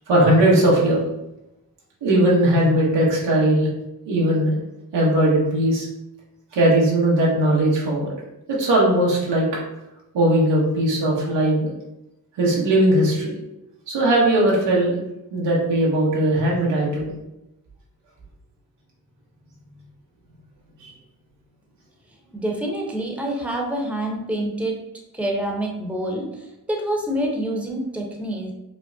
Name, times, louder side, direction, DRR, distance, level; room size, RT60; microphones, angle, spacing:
voice 1, 0.1-1.0 2.0-3.7 4.1-4.5 4.9-5.9 6.5-8.1 8.5-9.5 10.1-11.7 12.4-13.3 13.9-15.0 15.3-17.1 20.8-20.9, right 1 dB, 85° right, -4 dB, 1.2 m, -19 dB
voice 2, 22.3-24.9 25.1-28.5, right 1 dB, 5° right, 0 dB, 0.9 m, -27 dB
5.3 x 2.0 x 2.7 m, 0.90 s
supercardioid pair, 45°, 42 cm